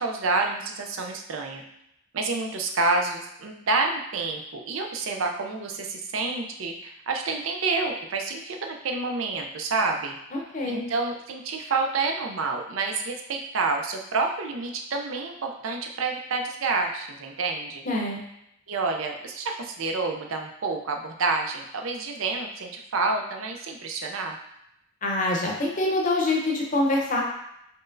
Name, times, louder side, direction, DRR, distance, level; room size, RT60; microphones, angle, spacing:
voice 1, 0.0-1.6 2.1-10.2 10.6-17.8 18.7-24.4, right 3 dB, 70° right, 3 dB, 0.5 m, -28 dB
voice 2, 10.3-10.8 17.8-18.2 25.0-27.2, left 2 dB, 40° left, -1 dB, 0.7 m, -25 dB
4.4 x 3.1 x 2.5 m, 0.79 s
head